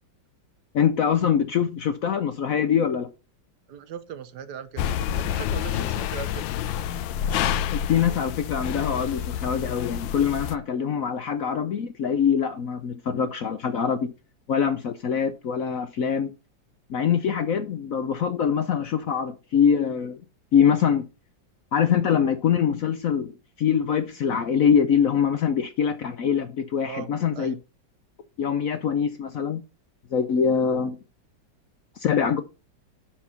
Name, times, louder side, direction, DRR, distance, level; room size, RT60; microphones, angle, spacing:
voice 1, 0.7-3.1 7.7-14.1 14.5-16.3 16.9-20.2 20.5-21.0 21.7-27.5 28.4-29.6 30.1-31.0 32.0-32.4, left 7 dB, 65° left, 0.9 m, -24 dB
voice 2, 3.7-6.4 26.8-27.6, right 8 dB, 70° right, 1.2 m, -39 dB
sound 1, 4.8-10.6, left 10 dB, 85° left, 1.3 m, -28 dB
6.6 x 5.9 x 5.6 m
omnidirectional pair, 2.1 m